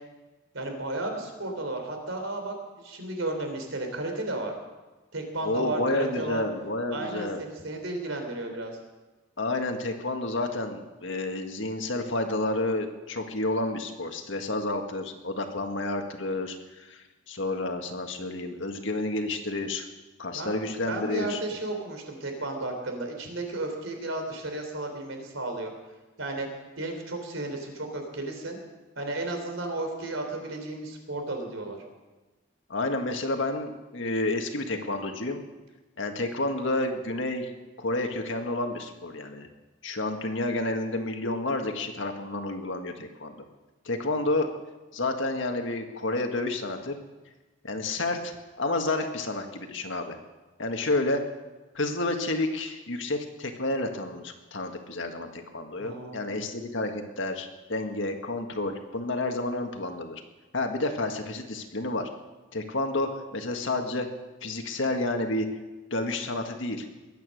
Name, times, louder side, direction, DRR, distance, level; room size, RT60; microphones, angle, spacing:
voice 1, 0.5-4.5 5.1-6.4 6.9-8.7 20.3-25.7 26.2-26.5 26.8-28.6 29.0-31.8 55.8-56.4, right 2 dB, 75° right, 4 dB, 3.5 m, -33 dB
voice 2, 5.4-7.4 9.4-19.9 20.2-21.4 32.7-35.4 36.0-37.5 37.8-39.5 39.8-43.4 43.9-44.5 44.9-46.9 47.6-50.2 50.6-51.2 51.8-60.2 60.5-62.1 62.5-64.1 64.4-65.5 65.9-66.9, left 2 dB, 70° left, 4 dB, 1.8 m, -30 dB
22.0 x 9.2 x 6.5 m, 1.2 s
head